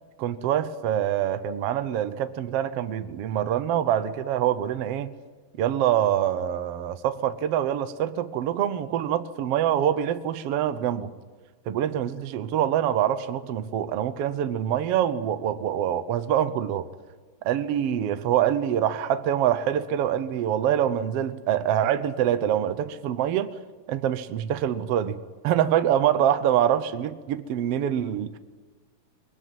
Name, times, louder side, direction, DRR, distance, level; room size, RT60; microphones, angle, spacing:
voice 1, 0.2-5.1 5.6-11.1 11.7-16.9 17.4-23.5 23.9-25.2 25.4-28.4, right 10 dB, 80° right, 11 dB, 1.3 m, -25 dB
21.5 x 21.5 x 9.5 m, 1.3 s
omnidirectional pair, 4.1 m